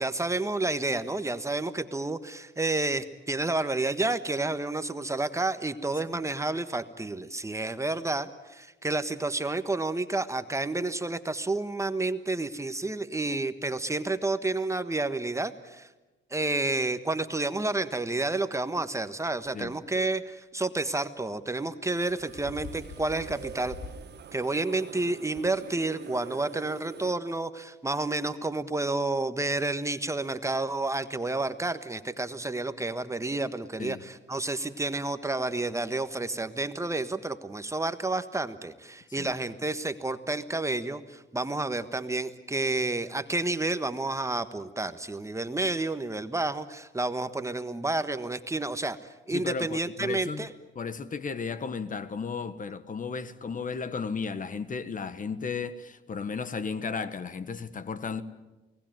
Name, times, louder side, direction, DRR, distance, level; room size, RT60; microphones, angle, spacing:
voice 1, 0.0-15.9 16.3-23.7 24.3-49.0 49.3-50.5, right 2 dB, 15° right, 1.4 m, -30 dB
sound 1, 19.6-19.7 21.7-24.1 24.5-24.6 25.4-25.5, left 4 dB, 75° left, 3.7 m, -44 dB
sound 2, 22.0-27.1, right 8 dB, 60° right, 1.4 m, -45 dB
voice 2, 49.3-50.5 50.7-58.2, left 5 dB, 40° left, 1.4 m, -34 dB
29.0 x 19.0 x 9.2 m
cardioid pair, 90°, 20 cm